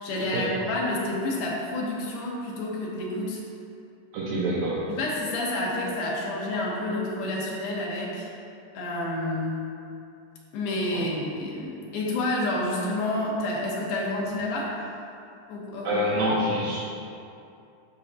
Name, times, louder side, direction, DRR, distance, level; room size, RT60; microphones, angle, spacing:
voice 1, 0.0-3.4 4.9-8.3 8.7-9.6 10.5-14.8 15.5-15.9, left 1 dB, 75° left, -4 dB, 2.8 m, -29 dB
voice 2, 4.1-4.9 10.9-11.0 15.8-16.8, equal, 75° right, -8 dB, 1.8 m, -26 dB
10.0 x 6.4 x 2.7 m, 2.5 s
omnidirectional pair, 4.5 m